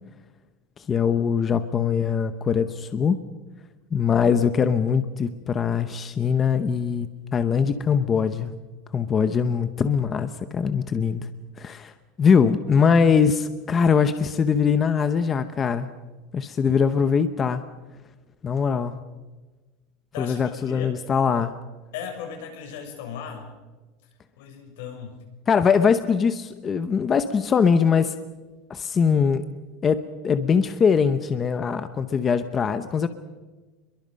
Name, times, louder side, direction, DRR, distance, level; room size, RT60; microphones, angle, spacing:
voice 1, 0.8-3.2 3.9-8.5 8.9-11.3 11.6-11.9 12.2-15.9 16.3-17.7 18.4-19.0 20.2-21.5 25.5-28.2 28.7-29.4 29.8-33.1, left 6 dB, 20° left, 11 dB, 0.8 m, -22 dB
voice 2, 20.1-21.0 21.9-23.5 24.4-25.2, left 7 dB, 75° left, 3 dB, 6.7 m, -37 dB
29.5 x 22.0 x 5.3 m, 1.2 s
supercardioid pair, 170°, 0 cm